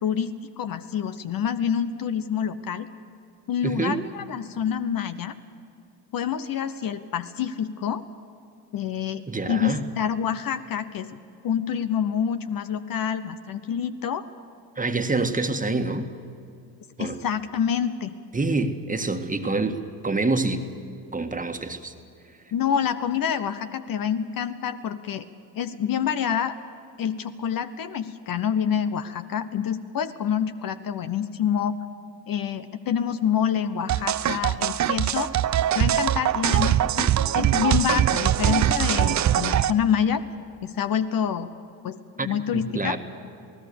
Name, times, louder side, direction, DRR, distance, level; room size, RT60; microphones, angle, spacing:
voice 1, 0.0-2.9 3.5-5.3 6.1-8.0 8.7-11.2 11.4-14.3 17.0-18.2 22.5-25.2 25.6-26.5 27.0-31.8 32.3-35.4 35.7-40.2 40.6-41.5 41.8-43.0, left 8 dB, 45° left, 10 dB, 1.0 m, -27 dB
voice 2, 3.6-4.0 9.3-9.9 14.8-16.1 17.0-17.2 18.3-20.7 21.1-21.9 42.2-42.3 42.5-43.0, right 3 dB, 15° right, 6 dB, 1.7 m, -26 dB
sound 1, 33.9-39.7, right 11 dB, 35° right, 0.7 m, -22 dB
28.0 x 18.0 x 7.0 m, 2.5 s
hypercardioid pair, 65°, 48 cm